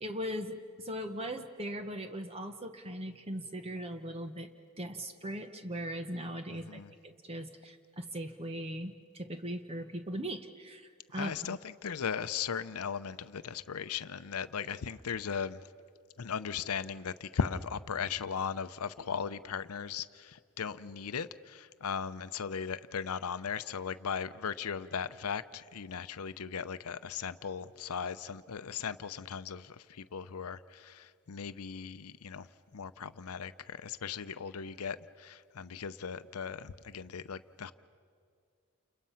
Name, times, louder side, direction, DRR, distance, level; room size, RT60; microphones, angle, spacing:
voice 1, 0.0-4.5 4.8-11.3, equal, 25° right, 7 dB, 0.9 m, -39 dB
voice 2, 6.5-6.9 11.2-15.6 16.2-37.7, left 6 dB, 80° left, 13 dB, 0.7 m, -38 dB
29.5 x 29.0 x 5.7 m, 2.2 s
head